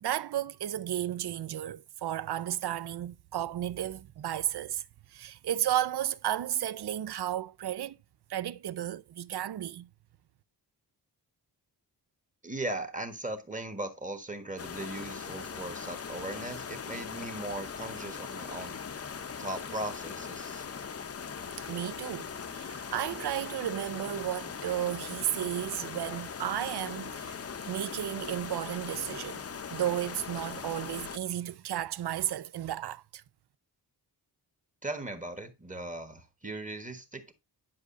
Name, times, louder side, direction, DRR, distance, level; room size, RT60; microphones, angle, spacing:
voice 1, 0.0-4.8 5.1-8.0 8.3-9.9 21.7-27.4 27.7-29.4 29.7-33.2, right 11 dB, 75° right, 0.6 m, -33 dB
voice 2, 12.4-18.8 19.4-20.6 34.8-37.3, right 2 dB, 20° right, 1.4 m, -38 dB
sound 1, 14.6-31.2, left 6 dB, 35° left, 0.7 m, -40 dB
10.5 x 6.3 x 2.6 m
wide cardioid pair, 170°, 40 cm